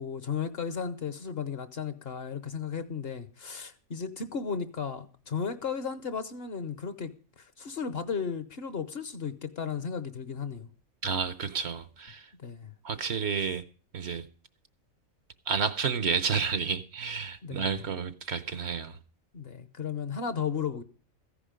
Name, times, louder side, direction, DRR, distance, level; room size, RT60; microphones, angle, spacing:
voice 1, 0.0-7.1 7.4-10.7 12.4-12.7 17.4-17.7 19.3-20.8, left 6 dB, 50° left, 1.0 m, -34 dB
voice 2, 11.0-12.3 12.8-13.6 13.9-14.2 15.5-19.0, right 6 dB, 60° right, 1.0 m, -30 dB
14.5 x 10.0 x 5.1 m
omnidirectional pair, 1.4 m